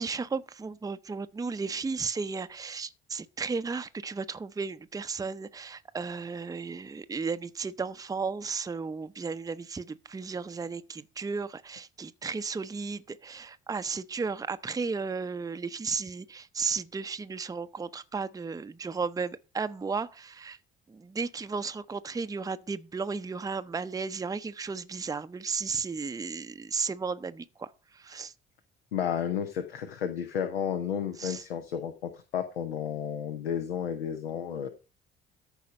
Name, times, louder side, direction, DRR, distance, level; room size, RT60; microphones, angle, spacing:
voice 1, 0.0-20.6 20.9-28.3 31.2-31.4, right 5 dB, 10° right, 0.6 m, -34 dB
voice 2, 28.9-34.7, left 8 dB, 80° left, 0.8 m, -32 dB
13.5 x 4.9 x 5.2 m
figure-of-eight pair, 50°, 30 cm